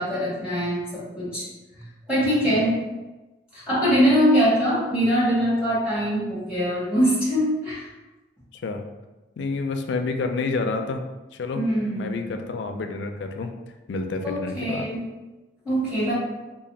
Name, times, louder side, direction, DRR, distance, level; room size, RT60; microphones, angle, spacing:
voice 1, 0.0-1.4 1.8-2.7 3.5-7.9 11.5-12.1 14.2-15.0 15.6-16.1, equal, 5° right, -9 dB, 1.4 m, -23 dB
voice 2, 9.4-11.0 11.3-11.6 12.0-13.5 13.9-14.9, left 3 dB, 70° left, 6 dB, 0.4 m, -29 dB
3.2 x 2.4 x 4.0 m, 1.1 s
head